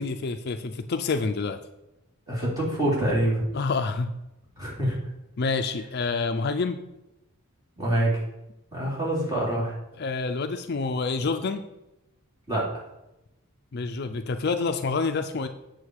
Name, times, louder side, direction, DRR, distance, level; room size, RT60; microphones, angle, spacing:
voice 1, 0.0-1.6 3.5-4.1 5.4-6.8 10.0-11.6 13.7-15.5, left 4 dB, 50° left, 8 dB, 0.5 m, -27 dB
voice 2, 2.3-3.4 4.6-5.0 7.8-8.2 8.7-9.7 12.5-12.8, right 1 dB, 20° right, -6 dB, 3.5 m, -25 dB
8.2 x 6.2 x 4.8 m, 0.92 s
head